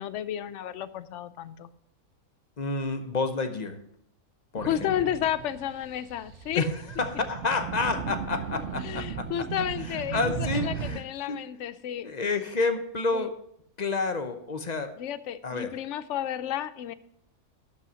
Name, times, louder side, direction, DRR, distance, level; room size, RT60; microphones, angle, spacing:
voice 1, 0.0-1.7 4.6-6.6 8.8-12.1 13.1-13.3 15.0-16.9, left 10 dB, 65° left, 15 dB, 0.8 m, -32 dB
voice 2, 2.6-3.8 4.5-4.9 6.5-9.5 9.8-11.4 12.0-13.4 13.8-14.9 15.4-15.8, left 3 dB, 35° left, 8 dB, 0.8 m, -30 dB
sound 1, 4.6-11.0, right 7 dB, 65° right, 0.8 m, -36 dB
12.0 x 5.5 x 6.2 m, 0.73 s
omnidirectional pair, 1.5 m